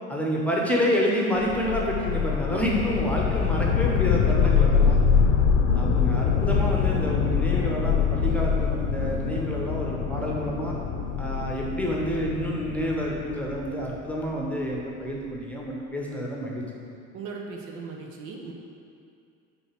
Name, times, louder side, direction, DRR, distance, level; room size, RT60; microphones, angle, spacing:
voice 1, 0.1-5.0 5.7-10.7 11.2-16.6, equal, 5° left, -3 dB, 1.1 m, -28 dB
sound 1, 1.4-14.5, left 6 dB, 70° left, 0.8 m, -24 dB
voice 2, 4.0-4.5 17.1-18.5, right 4 dB, 55° right, 0 dB, 1.0 m, -38 dB
5.4 x 4.3 x 5.8 m, 2.4 s
figure-of-eight pair, 70°, 43 cm